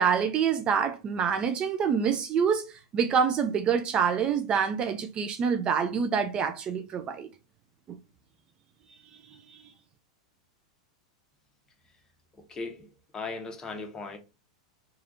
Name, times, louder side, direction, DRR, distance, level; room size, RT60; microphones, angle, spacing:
voice 1, 0.0-7.3 7.9-8.0 9.5-9.6, right 6 dB, 35° right, 0.4 m, -26 dB
voice 2, 12.4-12.9 13.1-14.2, left 3 dB, 20° left, 0.8 m, -37 dB
3.2 x 2.3 x 2.6 m
hypercardioid pair, 95°, 3 cm